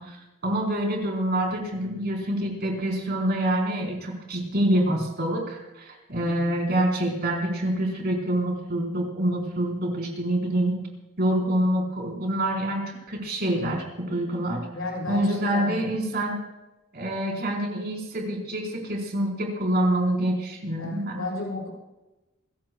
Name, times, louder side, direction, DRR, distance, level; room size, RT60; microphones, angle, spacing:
voice 1, 0.0-10.8 11.2-14.7 15.1-16.4 16.9-21.2, right 1 dB, 50° right, 0 dB, 4.4 m, -26 dB
voice 2, 6.2-6.6 14.7-15.8 20.8-21.7, left 2 dB, 80° left, -2 dB, 7.1 m, -33 dB
28.0 x 15.5 x 2.4 m, 1.0 s
head